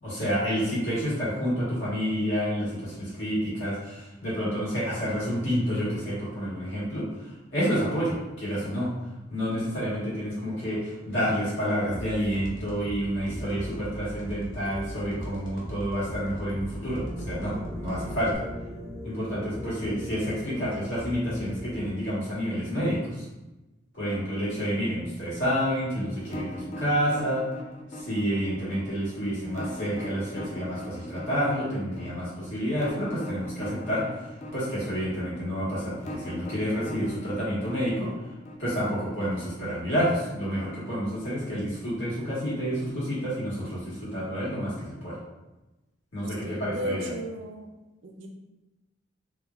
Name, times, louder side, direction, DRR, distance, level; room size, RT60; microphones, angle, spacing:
voice 1, 0.0-8.9 9.3-18.4 19.0-23.2 23.9-27.5 27.9-38.1 38.6-45.2 46.1-47.1, equal, 90° left, -8 dB, 1.4 m, -29 dB
sound 1, 11.9-18.3, right 1 dB, 75° left, 0.6 m, -39 dB
sound 2, 16.9-21.9, equal, 20° right, 0.5 m, -40 dB
sound 3, 26.2-39.1, left 1 dB, 35° left, 0.4 m, -40 dB
voice 2, 46.4-47.7 48.0-48.3, equal, 70° right, 1 dB, 0.5 m, -35 dB
3.0 x 2.3 x 2.3 m, 1.1 s
head